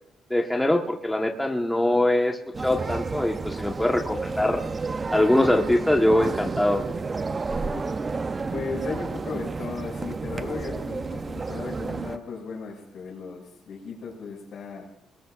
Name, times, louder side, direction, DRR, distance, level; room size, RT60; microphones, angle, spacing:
voice 1, 0.3-4.6 5.1-6.8, left 1 dB, 5° left, 2 dB, 1.2 m, -23 dB
voice 2, 1.8-2.1 6.1-6.3 7.5-14.9, left 5 dB, 65° left, 0 dB, 6.0 m, -37 dB
sound 1, 2.5-12.2, right 4 dB, 30° right, 0.5 m, -31 dB
23.5 x 20.5 x 2.5 m, 0.77 s
cardioid pair, 110°, 0 cm